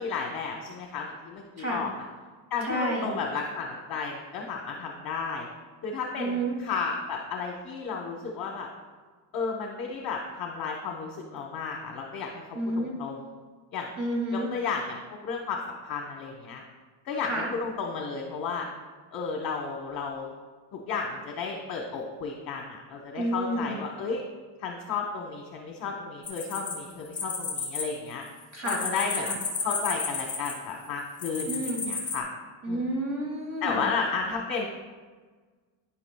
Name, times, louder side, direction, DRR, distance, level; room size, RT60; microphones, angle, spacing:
voice 1, 0.0-2.0 2.5-5.5 5.8-8.7 9.3-12.4 12.8-13.2 13.7-13.9 14.3-16.6 17.0-18.7 19.1-20.3 20.7-24.2 24.6-28.2 28.6-32.3 32.7-32.8 33.6-34.7, left 5 dB, 50° left, 0 dB, 1.0 m, -33 dB
voice 2, 2.6-3.1 6.2-6.6 12.5-12.9 14.0-14.5 17.2-17.5 23.2-23.8 28.5-28.8 29.1-29.3 31.5-31.8 32.6-33.8, right 1 dB, 35° right, -1 dB, 2.4 m, -30 dB
sound 1, 26.3-27.8 28.1-30.7 31.2-32.2, left 5 dB, 30° left, 2.2 m, -32 dB
11.5 x 9.8 x 2.3 m, 1.4 s
cardioid pair, 155°, 47 cm